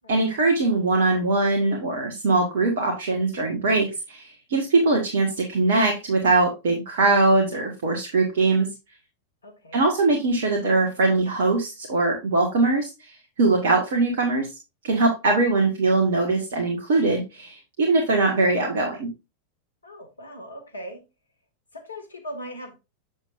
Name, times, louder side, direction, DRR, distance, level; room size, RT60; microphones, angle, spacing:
voice 1, 0.1-8.7 9.7-14.6 14.8-19.1, right 3 dB, 55° right, 2 dB, 1.6 m, -22 dB
voice 2, 9.4-9.8 19.8-21.0 21.7-22.7, equal, 75° left, 5 dB, 1.8 m, -39 dB
7.3 x 7.1 x 2.5 m, 0.26 s
figure-of-eight pair, 90°, 0 cm